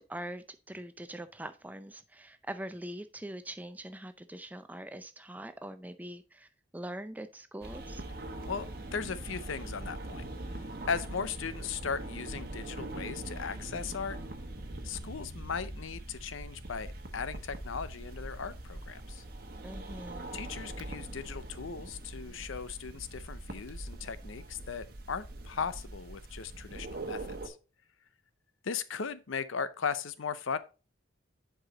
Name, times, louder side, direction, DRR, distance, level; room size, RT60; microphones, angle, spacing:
voice 1, 0.0-8.0 19.6-20.4, right 1 dB, 10° right, 0.4 m, -43 dB
sound 1, 7.6-27.5, right 1 dB, 50° right, 1.0 m, -42 dB
voice 2, 8.5-10.2 10.9-14.2 14.8-19.2 20.3-27.6 28.6-30.6, left 6 dB, 85° left, 0.6 m, -37 dB
7.7 x 4.8 x 3.8 m
head